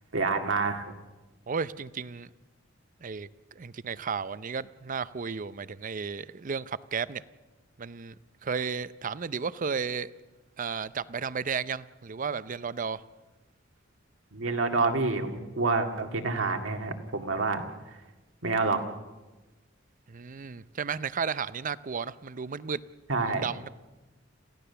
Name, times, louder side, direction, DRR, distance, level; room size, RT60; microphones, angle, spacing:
voice 1, 0.1-0.8 14.3-17.6 18.4-18.8 23.1-23.4, right 3 dB, 80° right, 2.1 m, -27 dB
voice 2, 1.5-2.3 3.0-3.3 3.6-7.2 7.8-8.1 8.4-10.1 10.6-13.0 20.1-22.8 23.3-23.7, right 6 dB, 45° right, 0.6 m, -33 dB
27.5 x 15.5 x 6.9 m
head